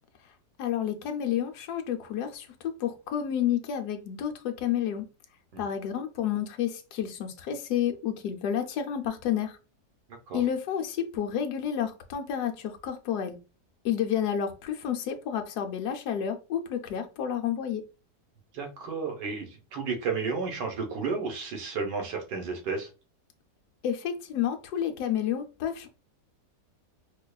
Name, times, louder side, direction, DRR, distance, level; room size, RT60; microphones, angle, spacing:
voice 1, 0.6-5.0 5.6-9.6 10.3-13.4 13.8-17.8 23.8-25.9, left 9 dB, 75° left, 1.1 m, -30 dB
voice 2, 18.5-22.9, right 4 dB, 85° right, 1.5 m, -32 dB
4.8 x 2.3 x 2.3 m
omnidirectional pair, 1.8 m